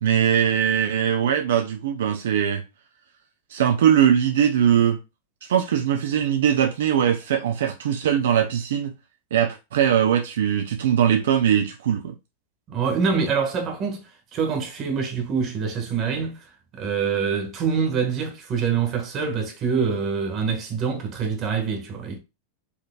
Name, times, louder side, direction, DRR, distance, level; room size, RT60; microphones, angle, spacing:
voice 1, 0.0-2.6 3.5-5.0 5.4-8.9 9.3-12.1, right 9 dB, 75° right, 0.5 m, -21 dB
voice 2, 12.7-14.0 14.3-16.4 16.7-22.2, right 6 dB, 40° right, 1.5 m, -25 dB
4.6 x 3.2 x 2.3 m
hypercardioid pair, 110°, 0 cm